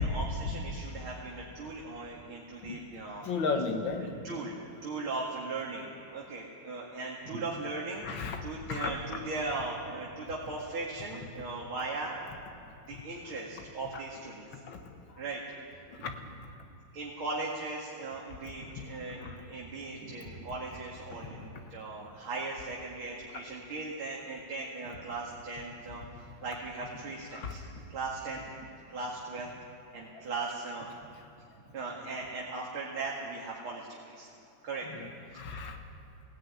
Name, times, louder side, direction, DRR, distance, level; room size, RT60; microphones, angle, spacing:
voice 1, 0.0-3.3 4.0-12.2 12.9-14.6 15.2-15.4 16.0-16.1 16.9-28.5 28.9-29.5 29.9-30.9 31.7-34.3 34.6-34.9 35.3-35.4, right 3 dB, 90° right, -4 dB, 3.0 m, -38 dB
voice 2, 3.2-4.1 8.0-8.4 8.7-8.9 12.9-13.0 13.9-14.0 14.7-14.9 15.9-16.1 19.2-19.4 27.3-27.7 30.1-30.3 34.9-35.1 35.3-35.8, left 4 dB, 70° left, 5 dB, 2.2 m, -34 dB
17.0 x 17.0 x 9.6 m, 2.7 s
omnidirectional pair, 2.3 m